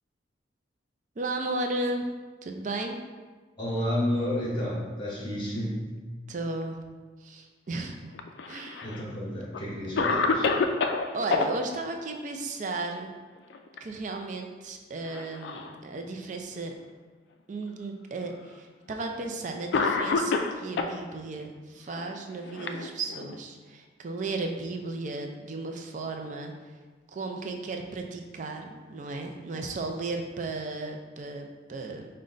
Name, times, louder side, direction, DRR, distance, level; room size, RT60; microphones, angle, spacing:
voice 1, 1.2-2.1 2.4-3.0 6.3-6.8 7.2-8.1 8.5-8.9 11.1-13.1 13.8-16.7 17.5-26.8 27.1-32.1, right 2 dB, 40° right, 4 dB, 0.4 m, -35 dB
voice 2, 3.6-5.8 8.8-10.5, left 1 dB, 25° left, -5 dB, 0.8 m, -31 dB
Cough, 8.1-9.0 9.5-9.6 10.0-11.5 13.4-13.8 14.1-14.2 15.0-15.7 16.5-16.6 17.7-17.8 18.9-19.1 19.7-21.0 21.9-23.4, left 4 dB, 65° left, 0.3 m, -28 dB
5.1 x 2.2 x 3.8 m, 1.4 s
head